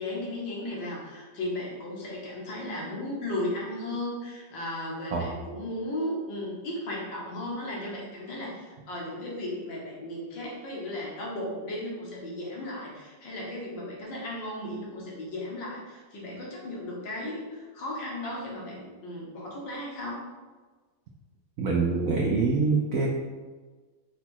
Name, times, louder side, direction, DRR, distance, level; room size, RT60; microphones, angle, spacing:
voice 1, 0.0-20.2, left 1 dB, 75° left, -4 dB, 1.8 m, -35 dB
voice 2, 21.6-23.1, right 4 dB, 75° right, -1 dB, 0.7 m, -25 dB
5.0 x 2.3 x 4.4 m, 1.4 s
omnidirectional pair, 2.0 m